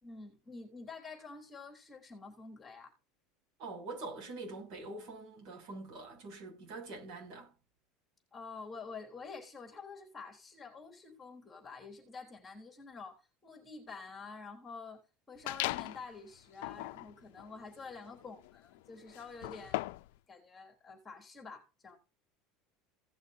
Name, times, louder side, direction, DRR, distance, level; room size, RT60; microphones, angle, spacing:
voice 1, 0.0-2.9 8.3-15.0 15.3-19.8 20.3-22.0, left 4 dB, 15° left, 3.5 m, -48 dB
voice 2, 3.6-7.5, right 3 dB, 55° right, 6.9 m, -44 dB
sound 1, 15.5-16.1 16.5-20.2, left 20 dB, 80° left, 0.4 m, -39 dB
17.5 x 6.4 x 2.8 m
supercardioid pair, 140°, 0 cm